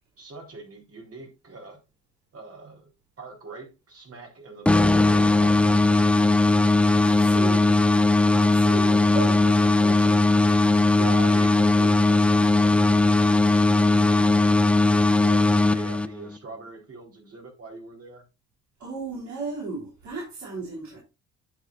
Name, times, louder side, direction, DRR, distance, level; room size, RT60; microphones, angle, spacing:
voice 1, 0.2-1.8 2.3-2.9 3.2-6.5 8.5-8.7 10.9-14.4 14.9-18.2, right 3 dB, 50° right, 3.8 m, -42 dB
sound 1, 4.7-16.4, left 2 dB, 5° left, 0.4 m, -19 dB
voice 2, 7.0-7.8 8.3-10.3 10.7-10.8 18.8-21.0, right 3 dB, 70° right, 4.3 m, -35 dB
10.5 x 7.8 x 2.5 m
cardioid pair, 90°, 30 cm